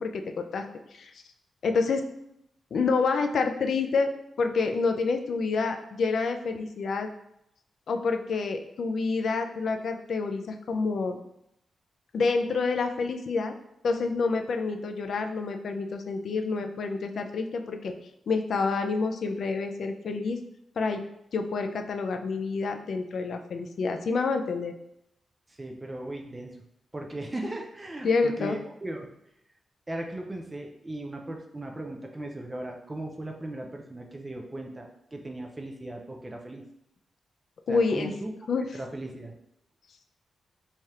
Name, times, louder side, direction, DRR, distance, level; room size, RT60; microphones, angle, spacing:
voice 1, 0.0-1.1 1.6-2.0 2.7-4.1 4.4-7.1 7.9-11.2 12.1-13.5 13.8-17.9 18.3-20.4 20.8-21.0 21.3-24.7 28.0-28.6 37.7-38.1 38.5-38.6, left 4 dB, 60° left, 6 dB, 0.3 m, -28 dB
voice 2, 25.5-26.6 26.9-29.1 29.9-36.6 37.7-38.3 38.7-39.3, right 1 dB, 15° right, 2 dB, 0.3 m, -37 dB
3.2 x 2.4 x 4.1 m, 0.78 s
wide cardioid pair, 160°, 0 cm